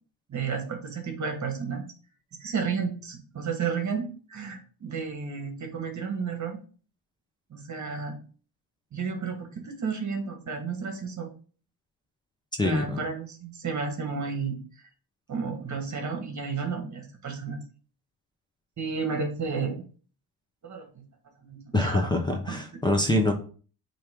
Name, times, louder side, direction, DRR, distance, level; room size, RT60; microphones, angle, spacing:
voice 1, 0.3-1.8 2.4-6.6 7.5-8.2 8.9-11.3 12.6-14.9 15.3-17.6 18.8-19.9 20.6-21.0 21.4-22.1 22.5-22.6, right 5 dB, 45° right, 4 dB, 1.5 m, -32 dB
voice 2, 12.6-13.0 21.7-23.3, left 1 dB, 10° left, 3 dB, 0.9 m, -25 dB
8.5 x 3.1 x 3.6 m, 0.40 s
cardioid pair, 110°, 39 cm